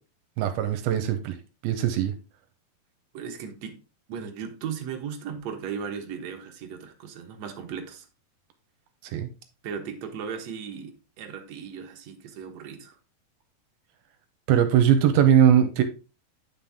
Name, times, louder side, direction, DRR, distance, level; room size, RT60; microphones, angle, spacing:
voice 1, 0.4-1.4 1.6-2.1 9.0-9.3 14.5-15.8, right 9 dB, 80° right, 8 dB, 2.6 m, -20 dB
voice 2, 3.1-3.8 4.1-8.1 9.6-13.0, right 7 dB, 60° right, 3 dB, 2.0 m, -36 dB
9.4 x 5.9 x 3.6 m, 0.32 s
omnidirectional pair, 4.4 m